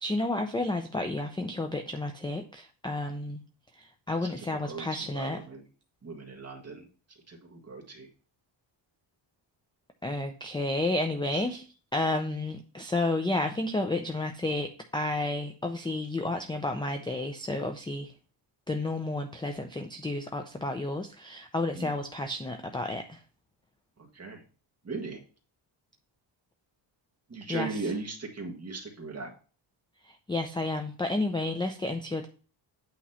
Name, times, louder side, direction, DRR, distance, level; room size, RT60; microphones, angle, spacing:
voice 1, 0.0-3.4 3.8-5.4 10.0-11.6 11.9-18.1 18.7-23.2 27.5-27.9 30.0-32.3, left 2 dB, 10° left, 5 dB, 0.4 m, -31 dB
voice 2, 4.2-5.6 6.0-6.9 7.3-8.1 11.3-11.4 21.7-21.9 24.1-24.4 24.8-25.2 27.3-29.3, right 3 dB, 30° right, 0 dB, 1.6 m, -38 dB
8.6 x 3.0 x 5.5 m, 0.38 s
wide cardioid pair, 150°, 47 cm